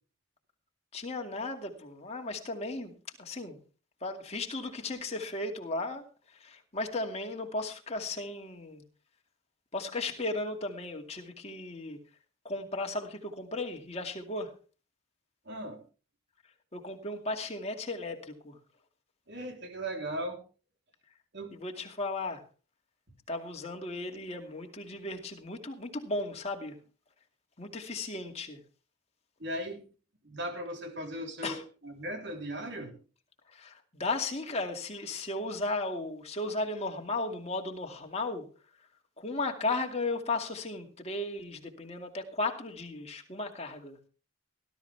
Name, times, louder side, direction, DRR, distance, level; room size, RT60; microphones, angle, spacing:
voice 1, 0.9-3.6 4.0-8.8 9.7-12.0 12.4-14.5 16.7-18.6 21.5-22.4 23.3-26.8 27.6-28.6 31.4-31.6 33.5-38.5 39.2-44.0, left 2 dB, 30° left, 2 dB, 2.3 m, -35 dB
voice 2, 15.5-15.8 19.3-20.4 21.3-21.6 29.4-29.8 30.2-31.6 31.8-33.0, right 1 dB, 50° right, 4 dB, 3.6 m, -37 dB
19.5 x 13.0 x 3.5 m, 0.36 s
head